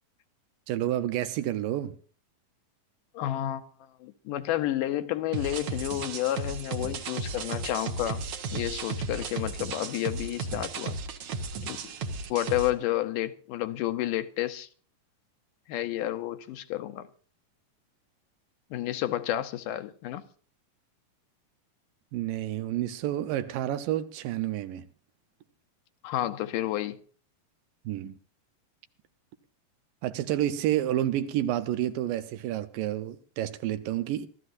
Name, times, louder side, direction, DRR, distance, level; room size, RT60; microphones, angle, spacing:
voice 1, 0.7-1.9 22.1-24.8 27.9-28.2 30.0-34.3, right 12 dB, 90° right, 2.6 m, -29 dB
voice 2, 3.1-3.6 4.0-8.2 8.5-11.0 11.6-11.9 12.3-14.7 15.7-17.1 18.7-20.2 26.0-27.0, left 14 dB, 80° left, 2.3 m, -30 dB
sound 1, 5.3-12.7, right 3 dB, 60° right, 1.8 m, -35 dB
24.5 x 13.5 x 2.6 m
omnidirectional pair, 3.9 m